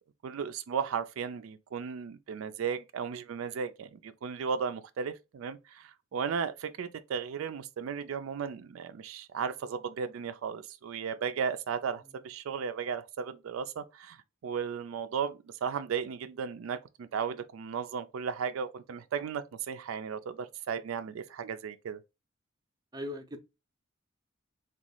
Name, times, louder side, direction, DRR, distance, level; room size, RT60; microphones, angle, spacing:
voice 1, 0.2-14.2 14.4-22.0, right 6 dB, 85° right, 0.4 m, -35 dB
voice 2, 22.9-23.4, left 1 dB, 20° right, 0.5 m, -40 dB
3.0 x 2.4 x 3.7 m
head